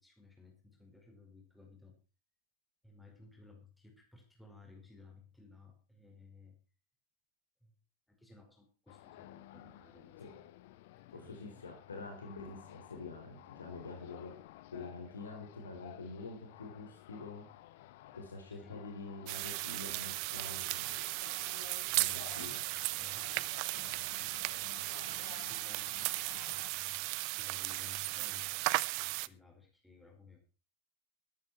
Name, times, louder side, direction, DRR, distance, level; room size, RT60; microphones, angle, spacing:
voice 1, 0.0-2.0 2.8-6.6 7.6-7.7 8.2-10.5 11.1-11.4 18.5-18.8 21.9-22.5 22.7-23.9 25.3-27.0 27.4-28.6 28.9-30.4, left 4 dB, 5° left, 0 dB, 5.1 m, -58 dB
sound 1, 8.9-26.7, left 15 dB, 50° left, 1.1 m, -54 dB
voice 2, 11.1-14.3 14.7-17.5 18.1-20.9 21.9-22.6, left 3 dB, 70° left, 3 dB, 3.8 m, -46 dB
sound 2, 19.3-29.3, right 23 dB, 45° right, 0.6 m, -36 dB
14.0 x 13.0 x 4.5 m, 0.34 s
figure-of-eight pair, 90°, 0 cm